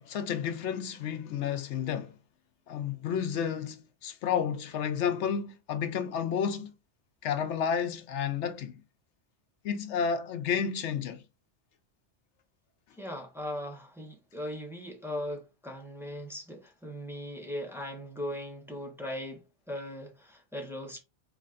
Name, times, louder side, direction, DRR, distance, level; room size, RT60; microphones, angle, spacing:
voice 1, 0.0-2.2 2.7-6.7 7.2-8.8 9.6-11.2, left 7 dB, 80° left, 1.0 m, -31 dB
voice 2, 13.0-21.0, left 1 dB, ahead, 1.2 m, -39 dB
4.2 x 3.3 x 3.8 m
omnidirectional pair, 1.2 m